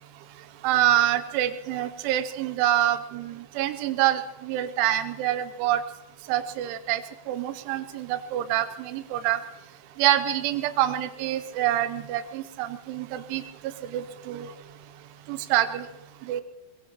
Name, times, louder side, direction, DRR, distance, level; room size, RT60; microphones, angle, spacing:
voice 1, 0.6-5.8 6.3-9.4 10.0-14.5 15.3-15.9 16.2-16.4, right 12 dB, 85° right, 11 dB, 3.2 m, -26 dB
22.0 x 21.5 x 3.0 m, 0.96 s
omnidirectional pair, 5.4 m